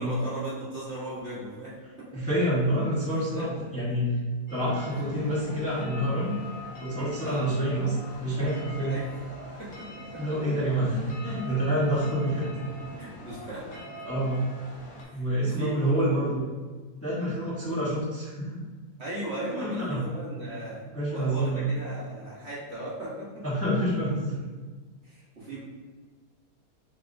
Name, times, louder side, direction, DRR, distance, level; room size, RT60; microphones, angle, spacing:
voice 1, 0.0-2.2 3.3-3.4 7.2-7.5 8.8-9.1 9.6-10.4 13.0-13.8 15.0-16.4 19.0-23.4 25.0-25.6, right 1 dB, 45° right, -8 dB, 1.5 m, -37 dB
voice 2, 2.1-4.1 4.5-6.3 6.8-8.9 10.1-12.5 14.0-14.5 15.1-16.4 17.0-18.6 19.5-20.0 20.4-20.5 20.9-21.7 23.4-24.3, right 1 dB, 10° left, -9 dB, 1.1 m, -27 dB
sound 1, 4.5-15.0, equal, 65° left, 1.5 m, -43 dB
6.7 x 2.9 x 2.6 m, 1.3 s
omnidirectional pair, 1.7 m